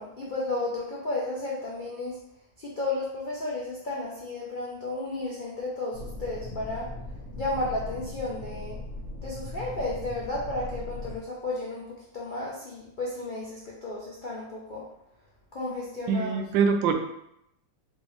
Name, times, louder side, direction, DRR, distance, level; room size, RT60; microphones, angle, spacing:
voice 1, 0.0-2.2 2.6-6.9 7.4-8.8 9.2-14.9 15.5-16.4, left 2 dB, 80° left, -5 dB, 0.4 m, -33 dB
sound 1, 5.9-11.2, left 1 dB, 40° left, 1.1 m, -39 dB
voice 2, 16.1-16.9, right 6 dB, 80° right, 5 dB, 1.3 m, -23 dB
4.2 x 3.4 x 3.1 m, 0.79 s
omnidirectional pair, 2.0 m